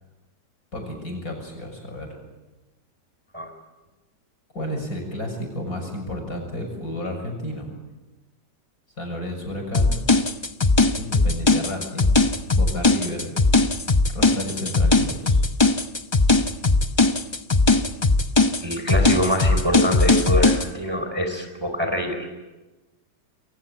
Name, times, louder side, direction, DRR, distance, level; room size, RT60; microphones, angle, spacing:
voice 1, 0.7-2.2 4.5-7.7 9.0-10.0 11.0-12.2 12.6-13.3 14.1-15.4, left 1 dB, 50° left, 3 dB, 7.3 m, -32 dB
sound 1, 9.7-20.7, left 3 dB, 30° left, 0.5 m, -19 dB
voice 2, 18.6-22.3, equal, 15° right, 5 dB, 3.8 m, -25 dB
28.0 x 23.0 x 8.8 m, 1.1 s
omnidirectional pair, 1.9 m